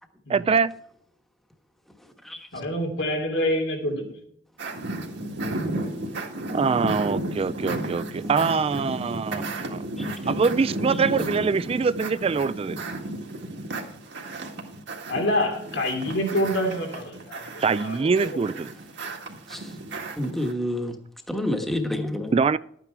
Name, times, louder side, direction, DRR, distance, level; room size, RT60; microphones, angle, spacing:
voice 1, 0.3-0.7 6.5-9.4 9.7-12.8 17.6-18.7 22.3-22.6, right 5 dB, 30° right, 0.3 m, -24 dB
voice 2, 2.5-4.2 15.1-18.4, left 1 dB, 90° left, 3.2 m, -27 dB
sound 1, 4.6-20.5, right 1 dB, 65° right, 1.9 m, -33 dB
voice 3, 20.2-21.0 21.3-22.3, left 1 dB, ahead, 1.3 m, -29 dB
12.0 x 9.1 x 4.5 m
head